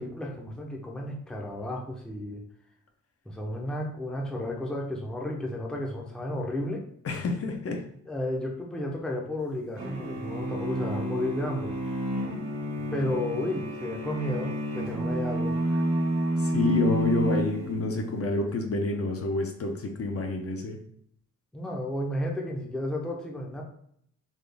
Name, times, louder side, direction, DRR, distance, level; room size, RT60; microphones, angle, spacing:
voice 1, 0.0-2.4 3.3-6.9 8.1-11.8 12.9-15.8 21.5-23.6, left 1 dB, ahead, 0 dB, 0.6 m, -33 dB
voice 2, 7.0-7.8 13.0-13.1 16.4-20.8, left 2 dB, 50° left, 3 dB, 0.7 m, -28 dB
sound 1, 9.8-18.1, right 1 dB, 70° right, 1.1 m, -30 dB
4.1 x 2.4 x 3.4 m, 0.67 s
wide cardioid pair, 120°, 30 cm